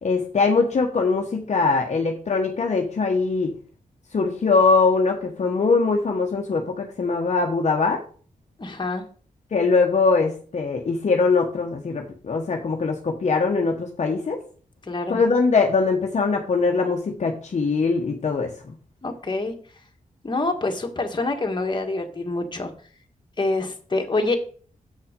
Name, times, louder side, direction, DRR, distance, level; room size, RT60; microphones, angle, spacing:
voice 1, 0.0-3.5 4.1-8.0 9.5-14.4 15.1-18.8, left 4 dB, 55° left, 2 dB, 1.1 m, -22 dB
voice 2, 8.6-9.0 14.8-15.2 19.0-19.5 20.2-22.7 23.4-24.4, left 2 dB, 35° left, 3 dB, 1.6 m, -26 dB
7.7 x 5.7 x 5.2 m, 0.43 s
wide cardioid pair, 85°, 14 cm